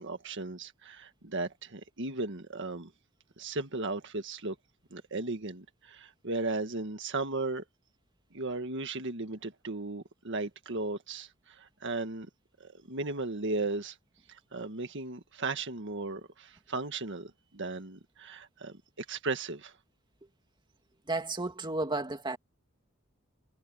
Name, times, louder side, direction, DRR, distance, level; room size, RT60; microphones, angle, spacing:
voice 1, 0.0-2.9 3.4-4.5 4.9-7.6 8.3-12.3 12.6-14.0 14.3-19.7, right 3 dB, 60° right, 1.7 m, -36 dB
voice 2, 21.1-22.4, right 2 dB, 20° right, 2.3 m, -32 dB
head